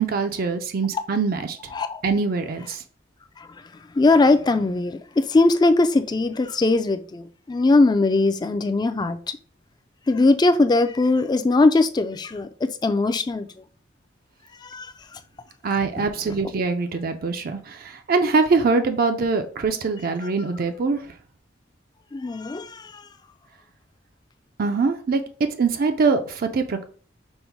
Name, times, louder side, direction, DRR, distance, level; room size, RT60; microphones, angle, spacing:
voice 1, 0.0-1.6 2.0-2.8 15.6-21.1 24.6-25.2 25.6-26.8, right 4 dB, 50° right, 0.4 m, -23 dB
voice 2, 4.0-9.2 10.1-13.5 14.6-15.2 16.0-16.1 22.1-23.0, left 2 dB, 20° left, 0.3 m, -20 dB
5.4 x 2.1 x 4.5 m
head